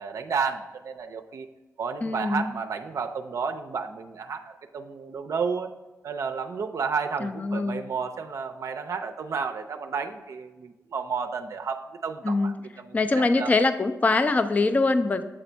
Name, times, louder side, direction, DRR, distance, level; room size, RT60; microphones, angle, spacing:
voice 1, 0.0-1.5 1.8-5.7 6.0-13.5, right 5 dB, 65° right, 6 dB, 0.4 m, -32 dB
voice 2, 2.0-2.5 7.2-7.8 12.2-12.5 12.9-15.2, left 3 dB, 25° left, 10 dB, 0.4 m, -23 dB
7.7 x 4.0 x 4.4 m, 1.1 s
cardioid pair, 75°, 6 cm